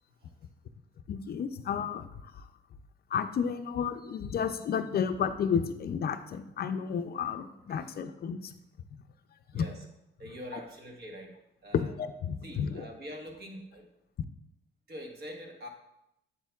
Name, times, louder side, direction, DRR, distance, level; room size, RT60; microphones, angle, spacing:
voice 1, 1.1-2.4 3.1-8.5 9.5-9.6 12.0-12.8, left 7 dB, 50° left, 9 dB, 0.5 m, -32 dB
voice 2, 9.5-9.8 10.2-11.9 12.4-13.9 14.9-15.7, equal, 55° right, 2 dB, 1.5 m, -45 dB
7.6 x 7.3 x 2.4 m, 0.84 s
cardioid pair, 90°, 20 cm